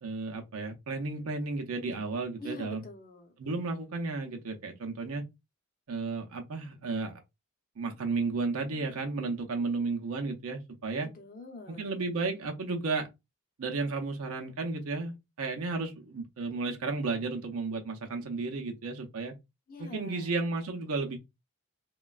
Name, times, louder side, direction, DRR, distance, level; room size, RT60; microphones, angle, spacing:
voice 1, 0.0-2.8 3.4-5.3 5.9-7.2 7.8-11.1 11.7-13.1 13.6-19.3 19.8-21.2, right 3 dB, 70° right, 0.6 m, -33 dB
voice 2, 2.4-3.3 11.1-11.8 19.7-20.4, left 2 dB, 40° left, 0.6 m, -44 dB
3.0 x 2.2 x 2.3 m
head